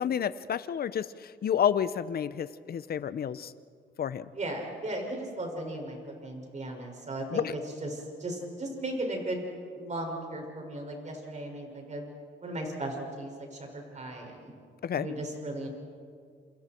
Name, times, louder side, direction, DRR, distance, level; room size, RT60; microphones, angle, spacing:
voice 1, 0.0-3.5 4.0-4.3 7.3-7.5 14.8-15.1, left 8 dB, 50° left, 15 dB, 0.8 m, -30 dB
voice 2, 4.3-9.4 9.7-12.1 12.4-14.5 14.9-15.7, right 1 dB, 35° right, 1 dB, 6.1 m, -36 dB
28.5 x 27.5 x 4.6 m, 2.2 s
cardioid pair, 90°, 20 cm